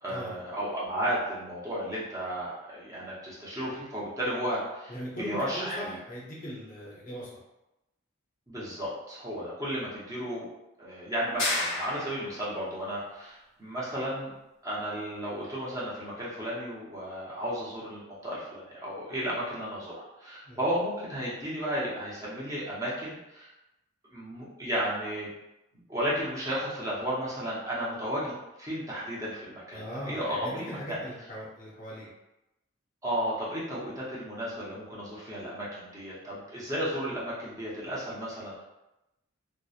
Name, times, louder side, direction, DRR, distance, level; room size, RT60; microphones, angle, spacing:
voice 1, 0.0-6.0 8.5-10.5 10.8-14.3 14.6-23.5 24.1-25.3 25.9-28.3 28.6-31.0 33.0-38.6, equal, 15° right, -7 dB, 0.6 m, -33 dB
voice 2, 4.9-7.3 20.5-20.6 29.7-32.1, equal, 40° left, -6 dB, 0.6 m, -39 dB
sound 1, 11.4-12.5, left 2 dB, 80° left, 1.1 m, -31 dB
2.7 x 2.0 x 2.3 m, 0.93 s
head